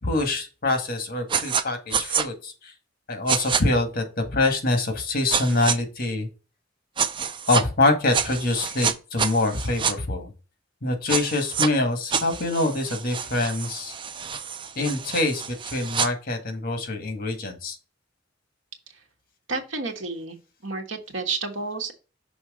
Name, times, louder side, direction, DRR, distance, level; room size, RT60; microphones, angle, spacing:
voice 1, 0.0-2.7 3.1-6.3 7.5-10.3 10.8-13.9 14.7-17.8, left 2 dB, 50° left, 6 dB, 1.7 m, -25 dB
sound 1, 1.3-1.6 1.9-2.2 3.3-3.6 5.3-5.8 7.0-7.6 8.1-9.9 11.1-11.7 12.1-16.1, right 6 dB, 25° right, 0.5 m, -27 dB
voice 2, 19.5-21.9, right 4 dB, 80° right, 3 dB, 1.6 m, -31 dB
6.2 x 3.6 x 4.9 m, 0.33 s
head